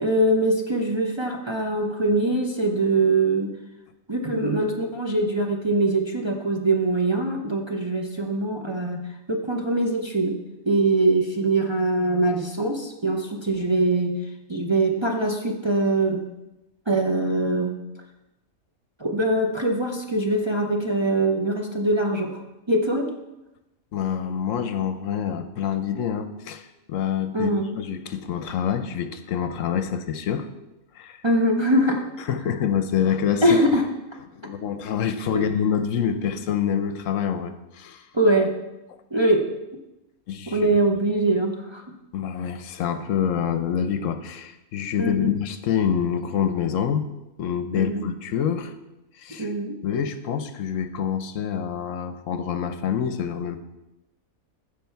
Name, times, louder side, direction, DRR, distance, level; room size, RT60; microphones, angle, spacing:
voice 1, 0.0-3.5 4.1-9.0 9.3-10.4 10.6-14.2 14.5-16.3 16.9-17.8 19.0-22.4 22.7-23.1 27.3-27.7 31.2-32.0 33.4-33.8 35.3-35.5 38.1-38.6 39.1-39.5 40.5-41.9 45.0-45.4 47.7-48.0 49.4-49.8, right 2 dB, 25° right, 0 dB, 0.7 m, -22 dB
voice 2, 23.9-30.5 31.0-31.2 32.3-33.4 34.3-38.0 40.3-40.7 42.1-47.1 47.4-48.7 49.2-49.5 49.8-53.6, left 8 dB, 70° left, 10 dB, 1.0 m, -26 dB
15.0 x 5.2 x 4.5 m, 0.96 s
omnidirectional pair, 1.4 m